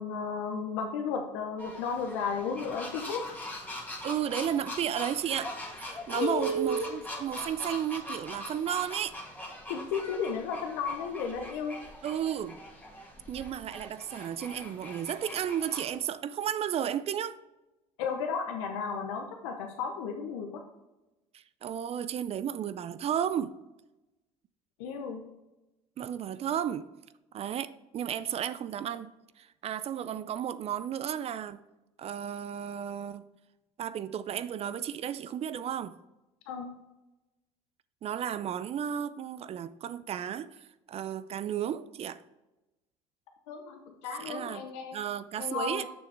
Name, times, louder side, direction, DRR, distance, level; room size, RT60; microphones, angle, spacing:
voice 1, 0.0-3.3 6.1-6.9 9.7-11.8 18.0-20.6 24.8-25.2 36.5-36.7 43.5-45.0 45.4-45.9, left 4 dB, 90° left, 0.8 m, -33 dB
sound 1, 1.6-16.0, left 1 dB, 10° left, 1.7 m, -42 dB
voice 2, 4.0-9.2 12.0-12.6 13.3-17.4 21.3-23.6 26.0-26.9 27.3-29.1 29.4-31.6 32.0-33.3 33.8-36.0 38.0-42.2 44.2-44.7 44.9-45.9, right 9 dB, 45° right, 0.4 m, -33 dB
6.9 x 6.2 x 3.4 m
supercardioid pair, 80°, 15 cm